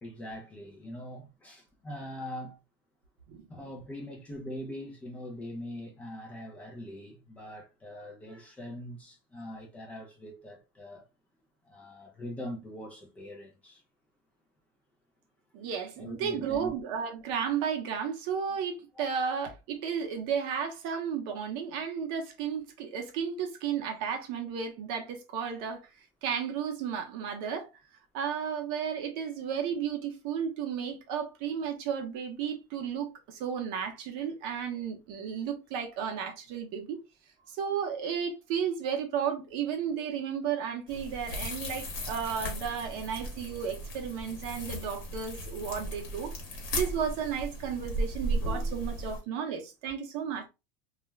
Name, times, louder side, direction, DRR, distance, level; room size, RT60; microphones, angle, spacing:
voice 1, 0.0-2.6 3.5-11.1 11.6-13.8 16.0-16.7 18.9-19.0, left 1 dB, 10° left, 0.4 m, -42 dB
voice 2, 15.5-27.7 28.1-37.0 37.5-50.5, right 7 dB, 45° right, 0.7 m, -33 dB
sound 1, 40.9-49.2, right 1 dB, 50° left, 1.1 m, -36 dB
2.3 x 2.1 x 3.1 m
supercardioid pair, 170°, 12 cm